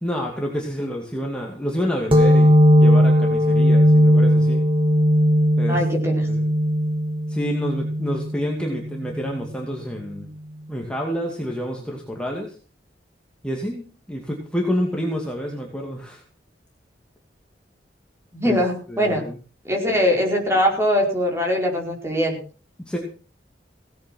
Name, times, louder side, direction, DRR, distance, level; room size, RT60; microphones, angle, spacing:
voice 1, 0.0-4.6 5.6-5.8 6.3-6.5 7.3-10.3 10.7-12.6 13.4-16.2 18.4-18.6 18.9-19.4 22.8-23.0, equal, 5° left, -1 dB, 2.4 m, -28 dB
sound 1, 2.1-9.4, equal, 30° right, 2.4 m, -18 dB
voice 2, 5.7-6.3 18.3-19.2 19.6-22.4, equal, 15° right, 1 dB, 4.9 m, -22 dB
17.5 x 9.5 x 6.2 m, 0.39 s
head